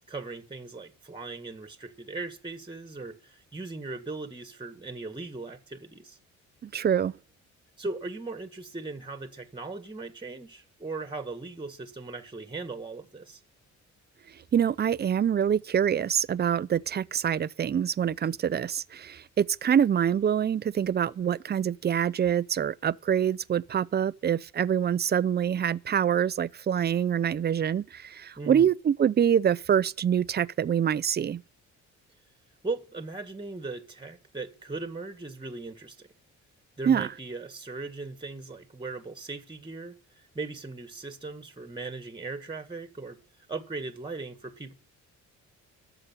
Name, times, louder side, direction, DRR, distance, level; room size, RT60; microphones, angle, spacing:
voice 1, 0.1-6.2 7.8-13.4 28.4-28.7 32.6-36.1 36.8-43.2 43.5-44.7, right 3 dB, 15° right, 1.8 m, -38 dB
voice 2, 6.6-7.1 14.5-31.4 36.9-37.1, right 8 dB, 35° right, 0.5 m, -25 dB
13.0 x 7.1 x 8.9 m
cardioid pair, 90°, 30 cm